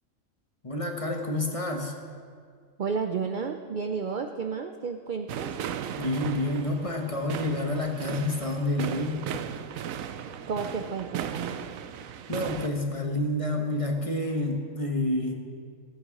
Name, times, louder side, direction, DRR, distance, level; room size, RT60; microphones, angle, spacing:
voice 1, 0.6-1.9 6.0-9.3 12.3-15.3, left 1 dB, 25° left, 2 dB, 1.1 m, -29 dB
voice 2, 2.8-5.6 10.5-11.6, right 5 dB, 55° right, 6 dB, 0.5 m, -32 dB
sound 1, 5.3-12.7, right 9 dB, 80° right, 1.0 m, -36 dB
15.5 x 8.0 x 6.1 m, 2.1 s
omnidirectional pair, 1.4 m